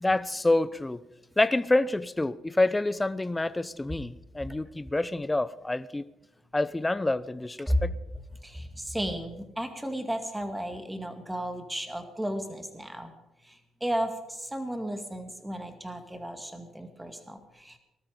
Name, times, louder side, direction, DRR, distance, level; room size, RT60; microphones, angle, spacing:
voice 1, 0.0-1.0 1.4-6.0 6.5-7.9, left 2 dB, 15° left, 0.7 m, -27 dB
voice 2, 8.4-13.1 13.8-17.8, equal, 10° right, 2.2 m, -33 dB
19.5 x 13.0 x 5.2 m
cardioid pair, 90°, 0 cm